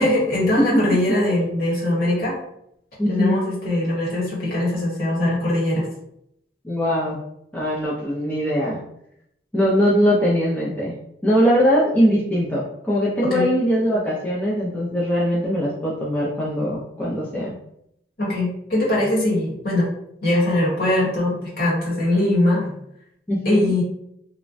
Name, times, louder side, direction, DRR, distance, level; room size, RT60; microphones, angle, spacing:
voice 1, 0.0-2.4 3.1-5.9 13.2-13.5 18.2-19.9 20.2-22.8 23.4-23.8, left 1 dB, 55° left, -6 dB, 1.3 m, -21 dB
voice 2, 3.0-3.4 6.6-7.2 7.5-8.8 9.5-10.9 11.2-17.6 23.3-23.6, equal, 10° left, -7 dB, 0.5 m, -21 dB
3.1 x 2.1 x 2.5 m, 0.75 s
head